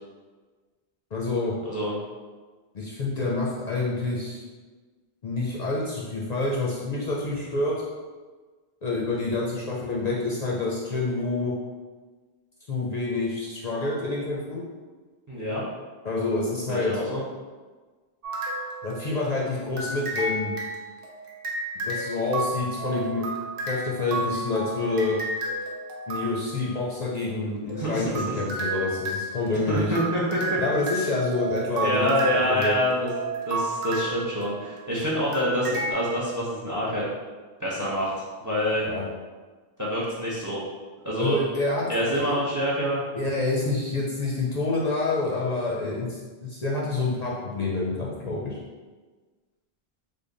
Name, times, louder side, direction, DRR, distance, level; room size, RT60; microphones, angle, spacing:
voice 1, 1.1-1.5 2.7-4.4 5.2-7.7 8.8-11.5 12.7-14.6 16.0-17.0 18.8-20.5 21.7-23.2 23.7-25.2 26.1-29.9 30.6-32.8 38.8-39.1 41.2-41.9 42.2-42.3 43.2-48.6, left 3 dB, 50° left, -5 dB, 0.6 m, -27 dB
voice 2, 1.6-1.9 15.3-15.6 16.7-17.2 27.7-28.4 29.7-30.4 31.8-33.1 33.5-37.1 37.6-38.1 38.4-38.9 39.8-40.6 41.0-41.4 41.9-43.0, equal, 25° right, -6 dB, 0.5 m, -26 dB
sound 1, 18.2-19.3 19.8-26.7 27.7-34.9 35.3-35.9, right 2 dB, 65° right, 0.8 m, -32 dB
3.4 x 2.1 x 3.7 m, 1.4 s
omnidirectional pair, 1.0 m